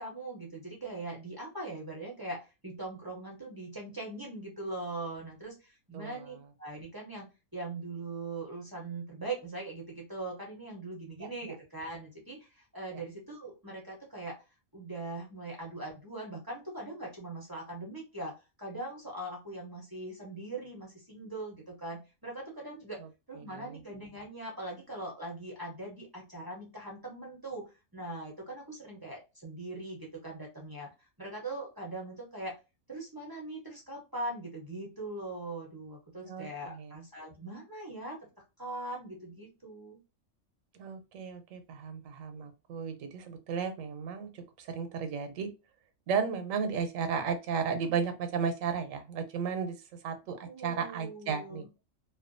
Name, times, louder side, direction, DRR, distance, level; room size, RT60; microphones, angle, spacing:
voice 1, 0.0-14.4 14.7-23.0 23.3-27.7 27.9-30.9 31.2-32.6 32.9-38.2 38.6-40.0 50.5-51.7, right 2 dB, 30° right, -2 dB, 0.4 m, -41 dB
voice 2, 5.9-6.3 11.2-11.6 12.9-13.0 23.4-23.8 36.2-36.9 40.8-45.5 46.1-49.8 50.0-51.7, right 6 dB, 85° right, 8 dB, 1.0 m, -34 dB
2.5 x 2.2 x 2.4 m, 0.28 s
omnidirectional pair, 1.3 m